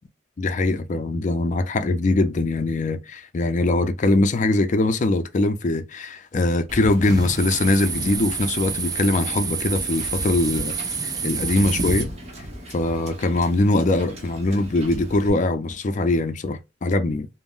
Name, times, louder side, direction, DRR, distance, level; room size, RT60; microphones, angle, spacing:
voice 1, 0.4-10.7 11.0-12.1 12.7-17.3, left 2 dB, 45° left, 0.4 m, -22 dB
Wind / Boat Water vehicle, 6.7-15.3, equal, 40° right, 1.0 m, -36 dB
sound 1, 7.0-12.0, right 6 dB, 20° right, 0.3 m, -29 dB
3.5 x 2.0 x 2.4 m
head